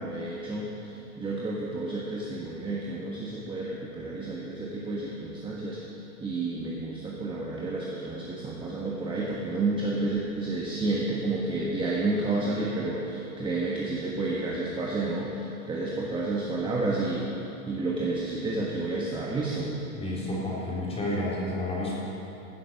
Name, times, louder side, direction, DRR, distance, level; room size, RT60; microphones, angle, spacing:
voice 1, 0.0-5.8 6.2-17.3 17.7-19.7, right 2 dB, 10° right, -4 dB, 1.3 m, -30 dB
voice 2, 19.9-22.0, left 1 dB, 15° left, -6 dB, 3.4 m, -30 dB
15.5 x 7.7 x 6.4 m, 2.9 s
hypercardioid pair, 135°, 43 cm